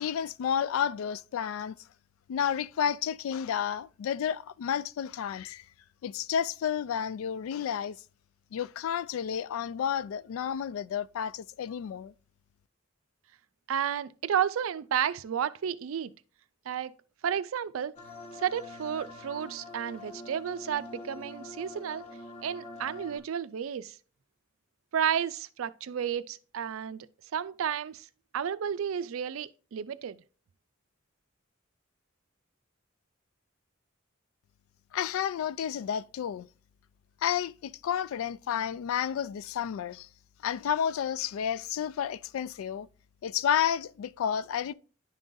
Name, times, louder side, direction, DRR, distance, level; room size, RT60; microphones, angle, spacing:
voice 1, 0.0-1.8 2.3-5.6 6.0-8.0 8.5-12.1 34.9-36.5 37.2-40.1 40.4-42.9 43.2-44.7, left 8 dB, 85° left, 0.3 m, -31 dB
voice 2, 13.7-16.1 16.7-16.9 17.2-17.9 18.4-22.0 22.4-24.0 24.9-27.1 27.3-28.1 28.3-30.2, right 8 dB, 80° right, 0.4 m, -32 dB
sound 1, 18.0-23.2, left 2 dB, 35° left, 1.0 m, -45 dB
10.5 x 3.8 x 2.6 m
head